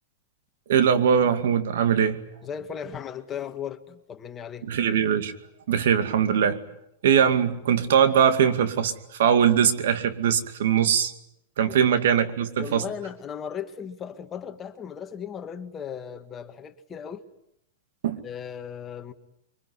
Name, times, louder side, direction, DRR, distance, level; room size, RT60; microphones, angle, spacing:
voice 1, 0.7-2.2 4.6-5.3 5.7-6.6 7.0-11.1 11.6-12.8 18.0-18.2, right 8 dB, 75° right, 10 dB, 2.3 m, -21 dB
voice 2, 2.4-4.7 11.7-11.9 12.6-17.2 18.2-19.1, left 8 dB, 25° left, 7 dB, 1.9 m, -36 dB
24.5 x 24.0 x 9.8 m, 0.78 s
hypercardioid pair, 130°, 0 cm